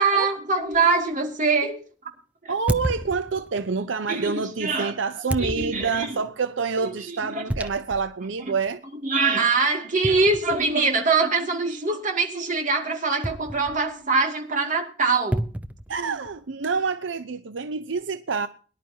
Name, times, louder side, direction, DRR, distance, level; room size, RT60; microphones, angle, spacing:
voice 1, 0.0-1.8 2.4-2.5 4.1-4.9 5.4-6.2 6.8-7.4 8.5-8.6 9.0-15.4, right 4 dB, 45° right, 2.4 m, -23 dB
sound 1, 0.7-0.9 2.7-3.7 5.3-6.1 7.5-8.2 8.6-8.7 10.0-11.0 13.2-14.0 15.3-16.4, right 1 dB, 10° right, 0.6 m, -31 dB
voice 2, 2.5-8.8 15.9-18.5, right 5 dB, 80° right, 0.6 m, -27 dB
23.0 x 11.0 x 2.8 m
head